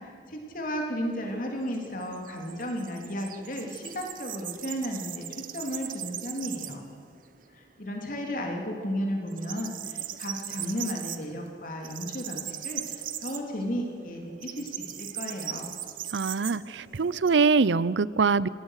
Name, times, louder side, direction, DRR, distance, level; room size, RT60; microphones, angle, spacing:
voice 1, 0.0-6.8 7.5-15.8, equal, 50° left, 1 dB, 3.2 m, -34 dB
sound 1, 1.0-7.0 7.3-7.4 7.8-8.6 8.8-17.3, right 11 dB, 50° right, 1.2 m, -39 dB
voice 2, 16.1-18.5, right 4 dB, 90° right, 19 dB, 0.6 m, -23 dB
26.5 x 19.0 x 6.6 m, 2.2 s
head